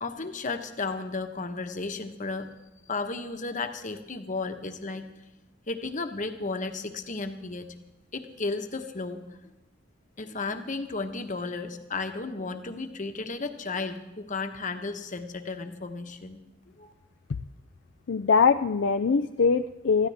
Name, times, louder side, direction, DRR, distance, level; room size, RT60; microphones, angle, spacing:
voice 1, 0.0-2.5 2.9-5.0 5.7-7.7 8.1-9.2 10.2-16.4 16.8-16.9, left 3 dB, 40° left, 6 dB, 1.2 m, -34 dB
voice 2, 18.1-20.1, left 5 dB, 65° left, 7 dB, 0.4 m, -22 dB
20.5 x 14.5 x 3.5 m, 1.0 s
head